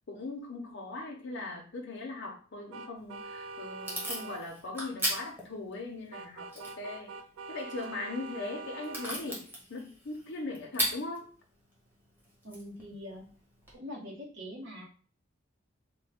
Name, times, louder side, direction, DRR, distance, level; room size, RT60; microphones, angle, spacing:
voice 1, 0.1-7.2 7.5-11.3, left 3 dB, 60° left, 0 dB, 0.6 m, -40 dB
sound 1, 2.7-4.4 6.1-9.1, right 3 dB, 90° right, 0.3 m, -43 dB
Packing tape duct tape / Tearing, 3.0-13.7, equal, 10° right, 1.0 m, -40 dB
voice 2, 12.4-13.2 13.7-14.8, equal, 65° right, -2 dB, 1.2 m, -43 dB
3.3 x 2.2 x 3.4 m, 0.39 s
head